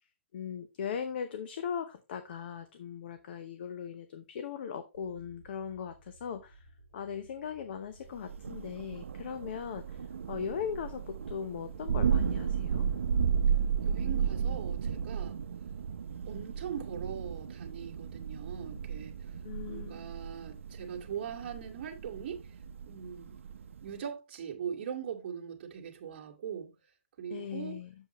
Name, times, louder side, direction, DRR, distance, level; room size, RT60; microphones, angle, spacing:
voice 1, 0.3-6.7 6.9-12.9 19.4-20.1 27.3-27.9, left 7 dB, 50° left, 0.8 m, -39 dB
sound 1, 4.9-12.3, right 1 dB, 80° left, 5.2 m, -58 dB
Thunder, 8.2-24.0, right 7 dB, 80° right, 0.7 m, -34 dB
voice 2, 13.8-15.4 16.3-19.3 19.7-22.5 22.9-23.4 23.8-26.7 27.2-27.8, right 8 dB, 45° right, 2.0 m, -41 dB
7.7 x 6.9 x 3.1 m
hypercardioid pair, 155°, 7 cm